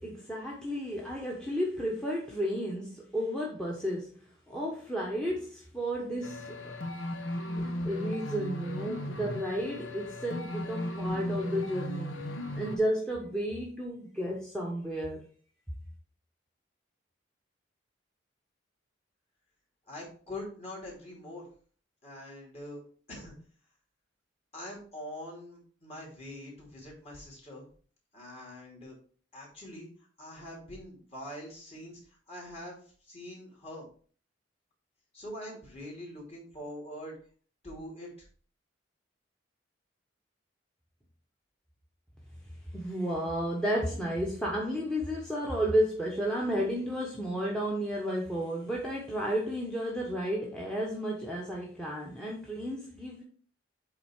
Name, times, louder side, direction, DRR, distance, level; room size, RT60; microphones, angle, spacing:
voice 1, 0.0-4.2 4.5-6.8 7.5-12.2 12.5-15.2 42.7-53.2, equal, 5° left, 1.0 m, -32 dB
sound 1, 6.2-12.8, left 1 dB, 90° left, 1.1 m, -36 dB
voice 2, 19.9-21.5 22.0-22.8 23.1-23.3 24.5-27.7 28.1-28.9 29.3-29.9 30.2-32.0 32.3-33.9 35.1-37.1 37.6-38.3, left 1 dB, 35° left, 2.8 m, -44 dB
7.9 x 3.6 x 4.4 m
head